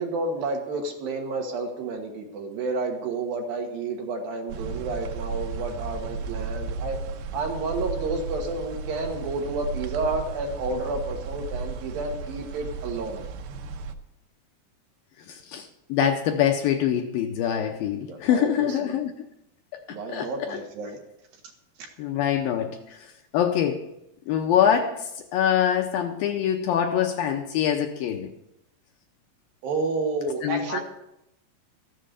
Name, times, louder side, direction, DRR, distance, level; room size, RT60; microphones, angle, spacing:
voice 1, 0.0-7.0 7.3-13.3 17.9-19.0 19.9-21.0 29.6-30.8, right 3 dB, 65° right, 2 dB, 3.3 m, -30 dB
sound 1, 4.5-13.9, right 4 dB, 85° right, 3.1 m, -34 dB
voice 2, 15.5-19.1 20.1-20.6 22.0-22.7 23.3-23.9 24.3-28.3 30.4-30.8, left 9 dB, 80° left, 4 dB, 2.2 m, -24 dB
14.0 x 7.7 x 6.8 m, 0.84 s
omnidirectional pair, 4.7 m